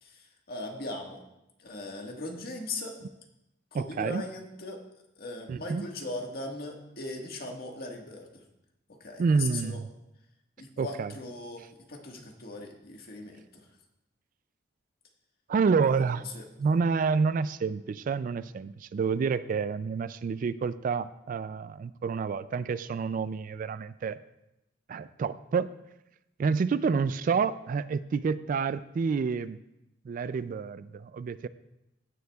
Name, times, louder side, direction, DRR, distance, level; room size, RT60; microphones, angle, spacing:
voice 1, 0.0-1.2 1.6-3.0 3.7-4.8 5.2-8.4 8.9-9.8 10.6-13.6 15.9-16.4, left 2 dB, 55° left, 1 dB, 1.6 m, -39 dB
voice 2, 3.7-4.2 5.5-5.9 9.2-9.9 10.8-11.1 15.5-16.2 16.6-24.2 24.9-25.7 26.4-29.6 30.1-31.5, right 5 dB, 45° right, 15 dB, 0.3 m, -28 dB
15.5 x 9.4 x 2.3 m, 0.88 s
head